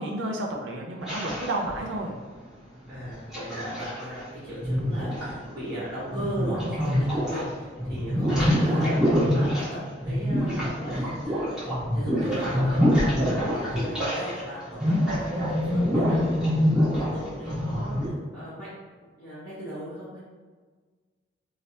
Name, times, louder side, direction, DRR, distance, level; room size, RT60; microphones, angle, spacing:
voice 1, 0.0-2.2 8.6-8.9, right 1 dB, 90° right, 1 dB, 0.6 m, -31 dB
sound 1, 1.0-2.1 2.9-4.2 4.6-7.5 7.7-14.4 14.7-18.1, equal, 5° right, 1.3 m, -25 dB
voice 2, 2.9-9.0 9.3-18.7 19.2-20.2, equal, 25° right, -14 dB, 1.2 m, -37 dB
3.1 x 2.9 x 2.8 m, 1.4 s
head